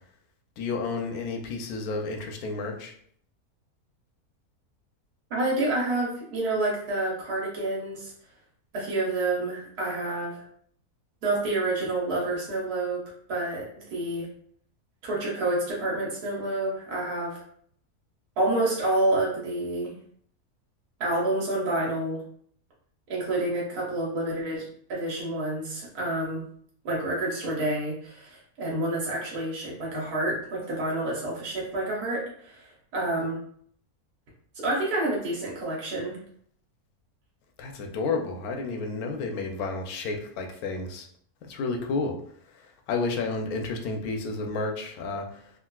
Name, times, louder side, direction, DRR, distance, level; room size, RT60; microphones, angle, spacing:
voice 1, 0.6-2.9 37.6-41.1 41.4-42.1 42.5-45.5, left 3 dB, 80° left, 3 dB, 1.0 m, -31 dB
voice 2, 5.3-8.1 8.7-10.4 11.2-13.0 13.3-14.3 15.0-17.4 18.4-19.9 21.0-22.2 23.1-26.4 26.8-33.4 34.5-36.2, right 2 dB, 90° right, -4 dB, 1.6 m, -28 dB
3.6 x 2.4 x 2.2 m, 0.62 s
omnidirectional pair, 1.6 m